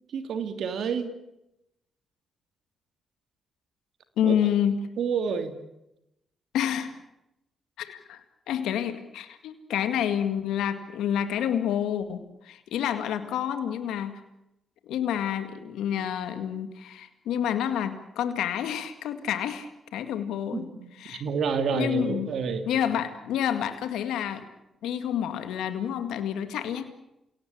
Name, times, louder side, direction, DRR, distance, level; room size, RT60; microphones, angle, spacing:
voice 1, 0.1-1.1 4.2-4.3 5.0-5.5 20.5-20.7 21.1-22.6, right 6 dB, 75° right, 8 dB, 2.6 m, -28 dB
voice 2, 4.2-4.9 6.5-6.9 7.8-14.2 14.9-20.7 21.0-21.2 21.7-22.3 22.6-24.5 24.8-26.9, left 9 dB, 85° left, 9 dB, 1.9 m, -29 dB
28.5 x 18.0 x 8.7 m, 0.88 s
supercardioid pair, 55°, 0 cm